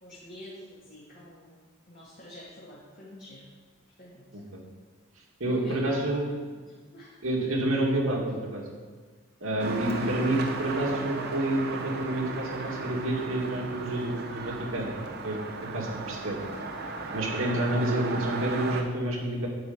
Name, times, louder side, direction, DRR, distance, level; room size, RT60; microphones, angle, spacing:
voice 1, 0.0-3.5 4.0-4.4 5.4-6.2 6.5-6.6 6.9-7.4 10.2-10.5, left 1 dB, 40° left, -7 dB, 2.0 m, -47 dB
voice 2, 4.3-4.6 5.4-6.3 7.2-8.6 9.4-14.9 15.2-16.4 17.1-19.5, right 1 dB, 80° right, -1 dB, 2.2 m, -29 dB
sound 1, 9.6-18.8, right 3 dB, 50° right, 1.0 m, -36 dB
9.5 x 5.1 x 8.1 m, 1.5 s
head